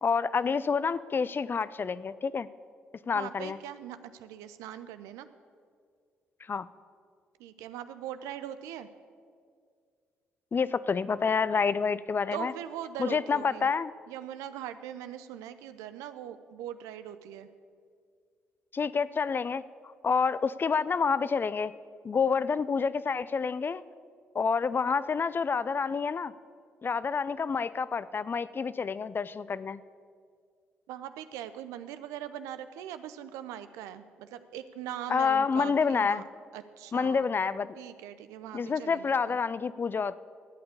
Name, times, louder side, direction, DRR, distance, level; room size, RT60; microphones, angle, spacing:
voice 1, 0.0-2.5 3.1-3.6 6.4-6.7 10.5-12.5 13.0-13.9 18.7-19.6 20.0-21.7 22.0-23.8 24.3-26.3 26.8-29.8 35.1-36.2 36.9-37.8 38.5-40.2, left 5 dB, 40° left, 17 dB, 0.5 m, -28 dB
voice 2, 3.1-5.3 7.4-8.9 12.3-13.7 14.1-17.5 30.9-36.2 36.5-37.2 37.8-39.4, right 11 dB, 80° right, 11 dB, 0.6 m, -41 dB
13.0 x 8.7 x 8.5 m, 2.1 s
hypercardioid pair, 45°, 5 cm